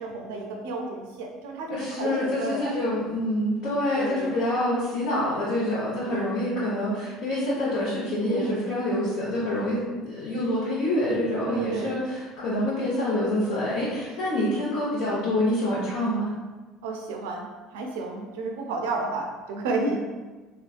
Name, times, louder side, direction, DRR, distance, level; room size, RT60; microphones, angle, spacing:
voice 1, 0.0-3.0 4.0-4.4 6.1-6.4 8.3-8.7 11.5-12.0 14.2-14.3 16.8-20.1, right 3 dB, 85° right, 1 dB, 0.4 m, -32 dB
voice 2, 1.7-16.3, left 1 dB, 70° left, -9 dB, 0.8 m, -26 dB
3.3 x 2.2 x 2.4 m, 1.3 s
hypercardioid pair, 80°, 0 cm